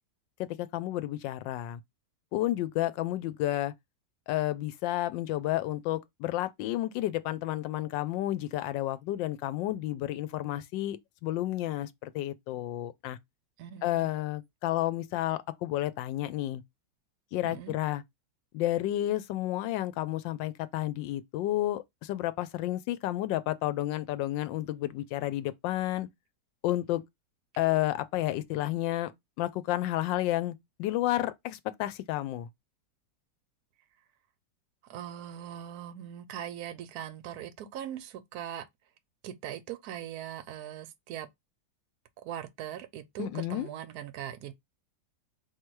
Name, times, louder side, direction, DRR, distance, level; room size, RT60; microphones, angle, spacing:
voice 1, 0.4-1.8 2.3-3.7 4.3-13.2 13.8-16.6 17.3-18.0 18.5-26.1 26.6-27.0 27.6-29.1 29.4-32.5 43.2-43.7, left 14 dB, 90° left, 1.3 m, -31 dB
voice 2, 13.6-14.2 17.4-17.8 34.9-38.7 39.2-41.3 42.2-44.5, right 10 dB, 70° right, 1.0 m, -40 dB
3.7 x 2.8 x 4.5 m
omnidirectional pair, 1.9 m